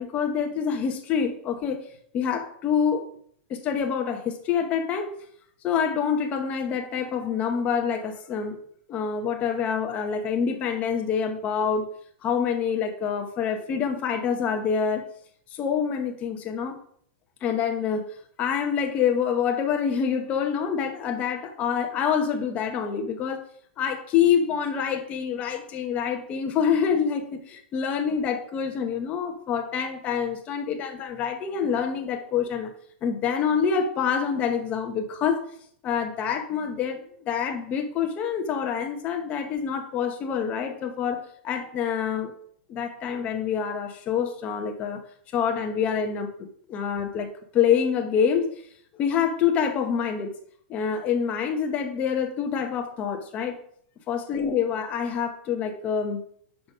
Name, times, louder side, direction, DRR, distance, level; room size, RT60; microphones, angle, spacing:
voice 1, 0.0-1.8 2.1-3.0 3.5-5.1 5.6-8.6 8.9-11.9 12.2-15.1 15.5-16.8 17.4-18.1 18.4-23.4 23.8-32.7 33.0-35.4 35.8-42.3 42.7-45.0 45.3-46.3 46.7-48.5 49.0-50.3 50.7-53.6 54.1-56.2, left 7 dB, 20° left, 5 dB, 0.9 m, -26 dB
5.8 x 5.1 x 5.3 m, 0.64 s
supercardioid pair, 165°, 7 cm